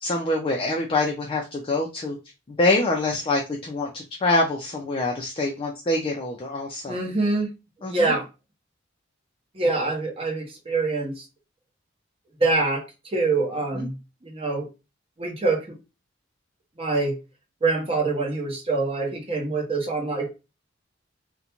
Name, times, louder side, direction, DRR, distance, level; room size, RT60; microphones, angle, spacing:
voice 1, 0.0-2.2 2.5-7.0 7.8-8.2 13.7-13.9, left 2 dB, 30° left, 0 dB, 0.4 m, -25 dB
voice 2, 6.9-7.5 7.8-8.2 9.5-11.1 12.4-12.8 13.1-13.9 14.2-14.7 15.2-15.6 16.8-17.1 17.6-20.3, right 3 dB, 30° right, 0 dB, 0.8 m, -24 dB
2.4 x 2.1 x 2.8 m, 0.27 s
head